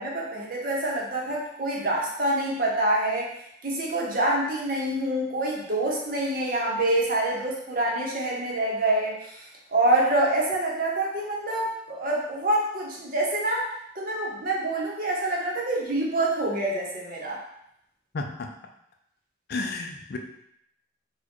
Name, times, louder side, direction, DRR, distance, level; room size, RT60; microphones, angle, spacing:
voice 1, 0.0-3.3 3.6-9.4 9.7-17.4, right 1 dB, 45° right, -2 dB, 0.7 m, -26 dB
voice 2, 18.1-18.5 19.5-20.2, left 3 dB, 50° left, 4 dB, 0.4 m, -32 dB
4.2 x 2.2 x 3.0 m, 0.75 s
head